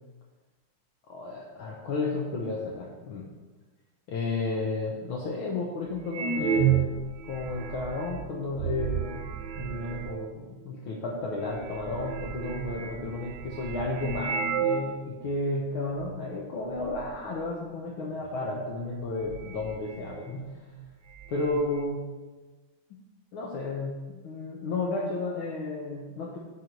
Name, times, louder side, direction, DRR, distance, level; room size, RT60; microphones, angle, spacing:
voice 1, 1.1-3.3 4.1-7.0 7.3-9.2 9.6-20.5 21.3-22.0 22.9-23.0 23.3-26.4, left 3 dB, 80° left, -3 dB, 1.9 m, -32 dB
sound 1, 6.1-10.4 11.1-11.2 11.4-15.0 15.3-15.4 16.0-16.4 16.6-17.1 18.4-18.5 18.9-20.5 20.7-20.8 21.1-21.8, right 8 dB, 70° right, 1.3 m, -32 dB
10.5 x 4.8 x 5.2 m, 1.3 s
omnidirectional pair, 2.3 m